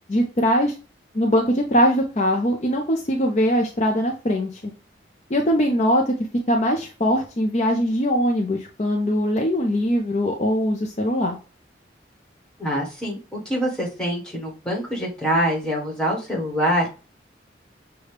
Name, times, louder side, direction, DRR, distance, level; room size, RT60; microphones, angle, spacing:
voice 1, 0.1-0.7 1.1-4.5 5.3-6.1 6.5-11.4, equal, 40° left, 1 dB, 0.6 m, -21 dB
voice 2, 12.6-16.9, equal, 5° left, -3 dB, 1.4 m, -25 dB
6.4 x 2.3 x 3.3 m, 0.34 s
head